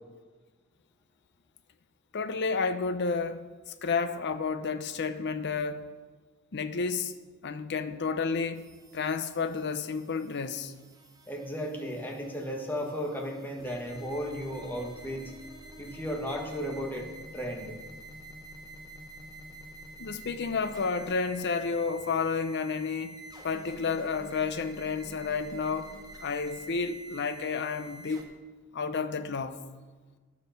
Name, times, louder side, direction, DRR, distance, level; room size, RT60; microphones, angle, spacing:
voice 1, 2.1-3.5 3.8-5.8 6.5-7.1 7.4-10.7 20.0-23.2 23.4-25.9 26.2-28.3 28.7-29.6, left 5 dB, 50° left, 0.6 m, -31 dB
sound 1, 8.5-28.2, right 1 dB, 15° right, 1.1 m, -48 dB
voice 2, 11.3-15.3 15.8-17.1 17.3-17.8, equal, 10° left, 1.5 m, -35 dB
11.0 x 6.8 x 6.6 m
head